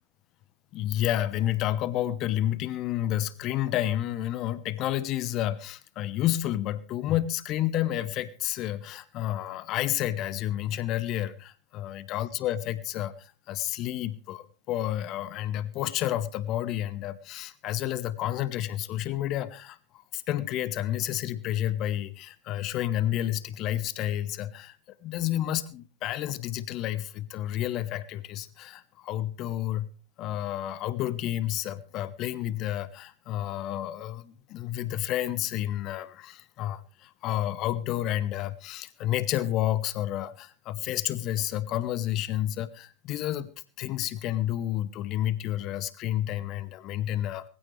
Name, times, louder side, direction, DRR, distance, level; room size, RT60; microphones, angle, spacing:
voice 1, 0.7-29.9 30.2-43.5 43.8-47.5, left 13 dB, 40° left, 1.0 m, -30 dB
20.0 x 15.5 x 3.3 m
figure-of-eight pair, 90°, 0 cm